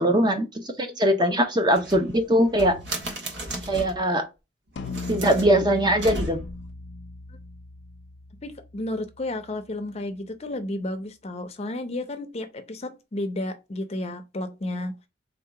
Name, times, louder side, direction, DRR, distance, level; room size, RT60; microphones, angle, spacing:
voice 1, 0.0-2.8 3.7-4.3 5.1-6.4, equal, 25° right, 0.7 m, -21 dB
sound 1, 1.7-4.1 4.8-6.7, right 1 dB, 75° right, 1.4 m, -35 dB
sound 2, 4.8-9.4, left 3 dB, 80° left, 0.5 m, -37 dB
voice 2, 8.4-14.9, left 1 dB, 35° left, 0.6 m, -32 dB
3.9 x 2.8 x 4.6 m
head